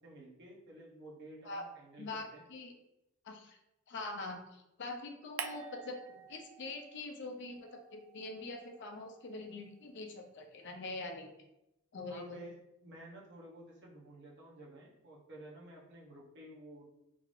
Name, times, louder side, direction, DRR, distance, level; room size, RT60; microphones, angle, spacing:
voice 1, 0.0-2.4 12.1-16.8, right 1 dB, 60° right, -3 dB, 0.9 m, -52 dB
voice 2, 2.0-2.7 3.2-3.6 3.9-11.3 11.9-12.4, left 2 dB, 60° left, 4 dB, 0.5 m, -44 dB
sound 1, 5.4-7.1 7.4-9.8, right 7 dB, 85° right, 0.4 m, -48 dB
3.7 x 3.2 x 2.5 m, 0.89 s
head